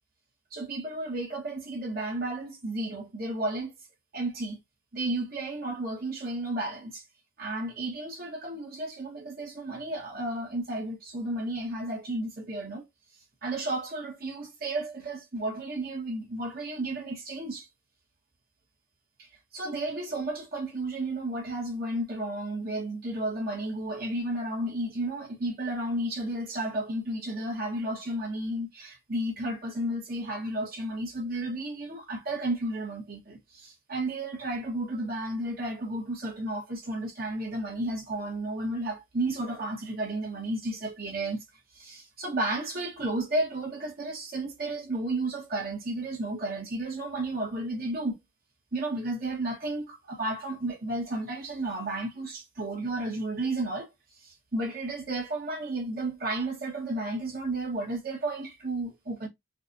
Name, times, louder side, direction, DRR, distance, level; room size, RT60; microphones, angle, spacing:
voice 1, 0.5-3.7 4.1-4.6 4.9-7.0 7.4-12.8 13.4-17.7 19.2-19.3 19.5-41.4 41.7-48.2 48.7-53.9 54.2-59.3, right 2 dB, 50° right, 1.5 m, -32 dB
5.9 x 2.5 x 2.8 m
head